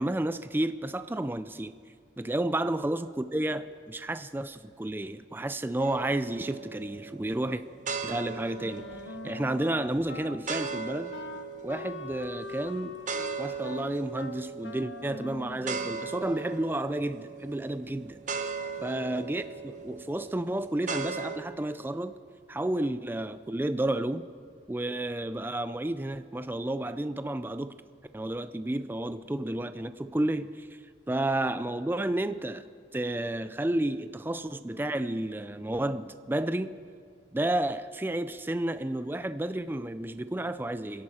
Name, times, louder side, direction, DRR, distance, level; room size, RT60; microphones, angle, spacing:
voice 1, 0.0-1.7 2.2-7.6 8.0-8.9 9.2-11.1 11.6-13.0 13.4-18.2 18.8-22.2 22.5-24.3 24.7-27.7 28.1-30.7 31.1-32.7 32.9-36.8 37.3-41.0, right 1 dB, 10° right, 12 dB, 0.4 m, -31 dB
sound 1, 5.8-21.4, right 5 dB, 40° right, 0.9 m, -39 dB
Wind instrument woodwind instrument, 8.5-16.1, left 3 dB, 70° left, 0.9 m, -43 dB
30.0 x 11.0 x 4.3 m, 2.2 s
head